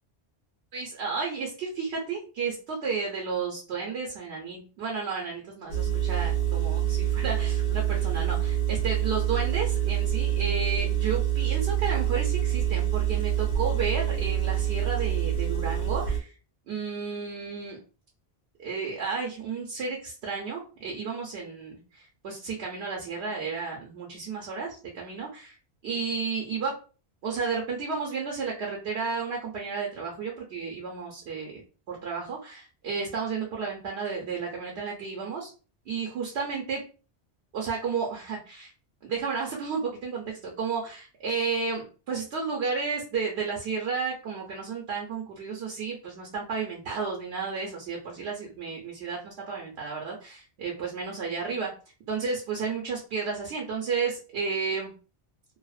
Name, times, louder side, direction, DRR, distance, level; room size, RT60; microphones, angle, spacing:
voice 1, 0.7-16.3 16.7-17.8 18.6-25.5 25.8-26.7 27.2-31.6 31.9-35.5 35.9-36.8 37.5-38.7 39.0-51.7 52.1-54.9, right 5 dB, 85° right, -1 dB, 0.9 m, -32 dB
Engine, 5.7-16.2, right 11 dB, 85° left, 1.1 m, -26 dB
2.8 x 2.0 x 2.3 m, 0.36 s
omnidirectional pair, 1.1 m